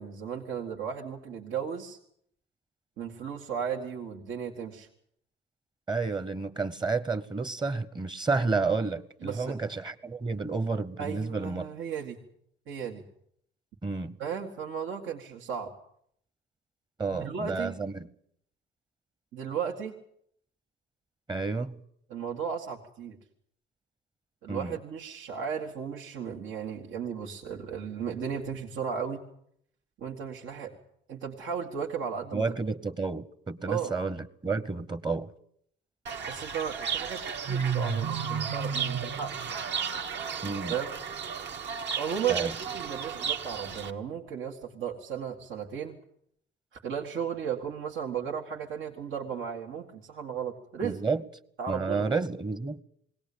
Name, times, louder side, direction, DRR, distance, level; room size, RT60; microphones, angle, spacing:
voice 1, 0.0-2.0 3.0-4.9 9.2-9.6 11.0-12.2 12.7-13.0 14.2-15.7 17.2-17.7 19.3-19.9 22.1-23.2 24.4-29.2 30.0-30.8 31.1-32.5 33.7-33.9 36.3-39.4 40.4-41.0 42.0-46.0 46.7-51.0 51.6-52.1, right 7 dB, 80° right, 2.0 m, -35 dB
voice 2, 5.9-11.7 13.8-14.2 17.0-18.1 21.3-21.8 24.5-24.8 32.3-35.3 40.4-40.7 42.3-42.5 50.8-51.2 51.7-52.8, right 4 dB, 20° right, 1.0 m, -30 dB
Fowl / Bird, 36.1-43.9, right 6 dB, 65° right, 1.6 m, -33 dB
21.0 x 17.5 x 8.6 m
cardioid pair, 90°, 20 cm